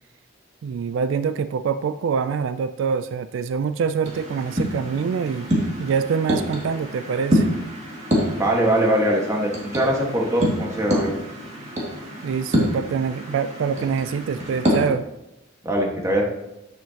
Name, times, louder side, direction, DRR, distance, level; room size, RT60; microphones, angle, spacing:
voice 1, 0.6-5.5 5.8-7.5 12.2-15.1, right 6 dB, 75° right, 13 dB, 0.3 m, -25 dB
sound 1, 4.0-14.9, equal, 35° right, 2.1 m, -27 dB
voice 2, 8.3-11.1 15.6-16.2, right 1 dB, 15° right, -2 dB, 1.5 m, -22 dB
10.5 x 7.5 x 2.9 m, 0.92 s
head